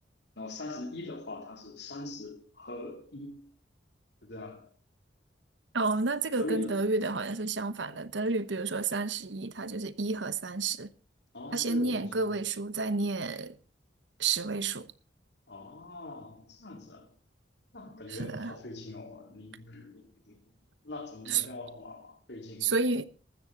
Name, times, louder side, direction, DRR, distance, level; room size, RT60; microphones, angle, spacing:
voice 1, 0.4-3.5 4.3-4.7 6.4-6.9 11.3-12.4 15.5-17.1 17.7-20.4 20.8-22.7, left 2 dB, 65° left, 3.1 m, -42 dB
voice 2, 5.7-10.9 11.5-13.5 14.2-14.9 18.1-18.5 21.3-21.4 22.6-23.0, right 3 dB, 75° right, 1.1 m, -30 dB
15.0 x 13.0 x 4.0 m
head